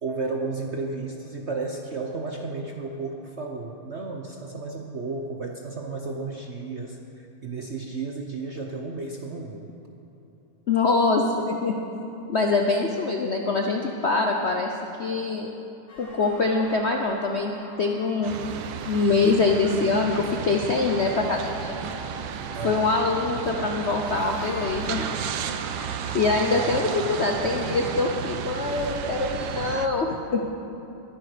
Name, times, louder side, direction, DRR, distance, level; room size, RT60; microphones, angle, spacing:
voice 1, 0.0-9.7 22.5-22.9 26.5-27.9, right 3 dB, 55° right, 2 dB, 0.8 m, -33 dB
voice 2, 10.7-11.7 12.3-14.7 15.0-15.5 16.0-17.5 17.8-18.4 18.8-21.8 22.6-25.1 26.1-30.5, left 3 dB, 60° left, 2 dB, 0.7 m, -24 dB
sound 1, 15.9-28.2, left 2 dB, 80° left, 2.6 m, -43 dB
sound 2, 18.2-29.9, right 8 dB, 75° right, 1.4 m, -33 dB
20.0 x 10.5 x 5.0 m, 2.9 s
omnidirectional pair, 2.2 m